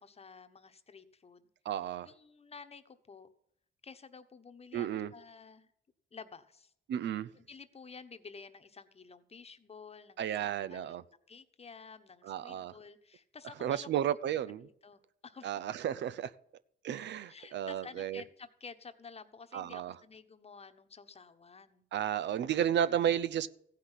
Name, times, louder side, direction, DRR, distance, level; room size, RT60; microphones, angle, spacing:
voice 1, 0.0-1.5 1.8-3.3 3.8-5.7 6.1-6.7 7.3-11.0 11.3-14.2 14.6-15.5 17.3-21.8 23.0-23.1, left 5 dB, 30° left, 9 dB, 1.1 m, -52 dB
voice 2, 1.7-2.1 4.7-5.1 6.9-7.3 10.2-11.0 12.3-12.7 13.6-14.7 15.4-16.3 16.8-18.2 19.5-19.9 21.9-23.5, right 10 dB, 65° right, 15 dB, 0.6 m, -33 dB
15.5 x 5.7 x 9.9 m, 0.71 s
cardioid pair, 90°, 20 cm